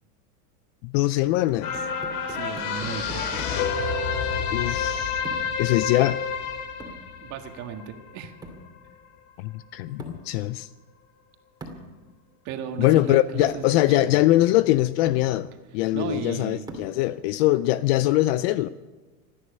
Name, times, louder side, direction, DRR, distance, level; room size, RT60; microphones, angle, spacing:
voice 1, 0.8-1.8 4.5-5.2 5.6-6.2 9.4-10.7 12.8-18.7, left 16 dB, 45° left, 0.4 m, -22 dB
sound 1, 1.2-3.7 5.2-5.6 6.8-7.1 8.4-8.7 10.0-10.3 11.6-11.9 12.9-13.0 13.4-13.7 14.5-14.6 15.1-15.3 16.7-17.0, right 2 dB, 10° right, 2.5 m, -41 dB
sound 2, 1.6-8.3 8.7-8.8, left 6 dB, 75° left, 2.8 m, -29 dB
voice 2, 2.3-3.4 7.2-8.3 12.4-14.2 15.9-16.7, right 7 dB, 40° right, 1.8 m, -35 dB
27.0 x 9.9 x 5.4 m
supercardioid pair, 140°, 45 cm